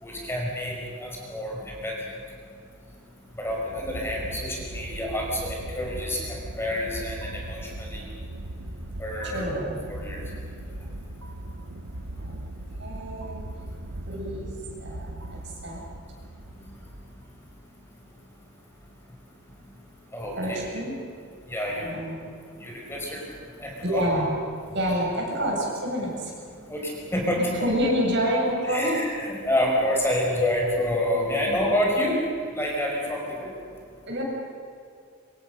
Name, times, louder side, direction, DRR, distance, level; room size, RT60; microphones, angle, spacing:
voice 1, 0.0-1.9 3.4-6.2 6.6-8.1 9.0-9.5 9.9-10.2 16.5-16.6 20.1-20.6 21.5-22.1 22.6-23.2 23.6-24.0 26.7-27.7 28.6-32.2 32.5-33.5, left 1 dB, 10° left, -2 dB, 5.3 m, -28 dB
sound 1, 3.3-17.5, right 1 dB, 80° right, 1.4 m, -39 dB
voice 2, 9.2-9.8 12.2-12.3 12.8-13.4 14.1-14.5 14.8-15.8 20.4-20.9 21.8-22.2 23.8-24.3 24.7-26.3 27.3-29.0 31.1-31.6 34.1-34.2, equal, 55° right, -2 dB, 7.8 m, -28 dB
26.5 x 26.0 x 6.7 m, 2.4 s
head